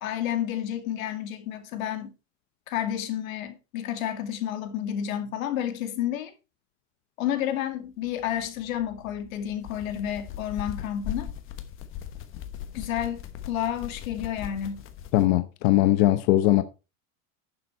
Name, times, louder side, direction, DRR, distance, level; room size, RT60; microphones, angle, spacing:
voice 1, 0.0-2.1 2.7-6.3 7.2-11.3 12.7-14.8, left 10 dB, 90° left, 2.3 m, -30 dB
sound 1, 8.0-15.3, left 10 dB, 30° left, 1.1 m, -40 dB
voice 2, 15.1-16.6, left 15 dB, 50° left, 0.8 m, -20 dB
11.0 x 7.1 x 4.3 m
supercardioid pair, 160°, 40 cm